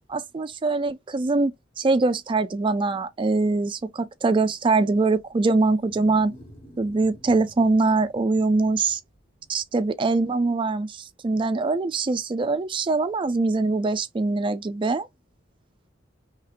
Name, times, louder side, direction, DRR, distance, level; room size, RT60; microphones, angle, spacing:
voice 1, 0.1-1.5 1.8-6.3 6.8-9.0 9.5-15.1, right 3 dB, 25° right, 0.3 m, -23 dB
Wild animals, 4.9-9.9, right 1 dB, 30° left, 0.9 m, -50 dB
4.2 x 2.9 x 2.4 m
head